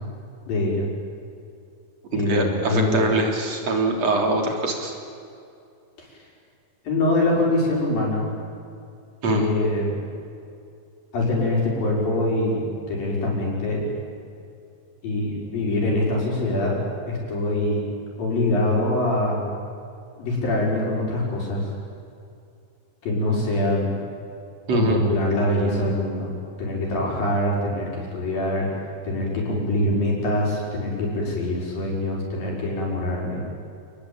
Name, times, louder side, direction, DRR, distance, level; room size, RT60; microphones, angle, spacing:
voice 1, 0.5-0.9 2.1-3.1 6.0-6.3 6.9-8.3 9.3-9.9 11.1-13.9 15.0-17.8 18.2-19.4 20.2-21.7 23.0-24.0 24.7-26.3 26.6-28.7 29.0-33.4, left 1 dB, 65° left, -3 dB, 7.3 m, -24 dB
voice 2, 2.1-4.9 9.2-9.5 24.7-25.0, right 2 dB, 45° right, 2 dB, 4.3 m, -23 dB
29.5 x 21.0 x 8.8 m, 2.4 s
omnidirectional pair, 4.5 m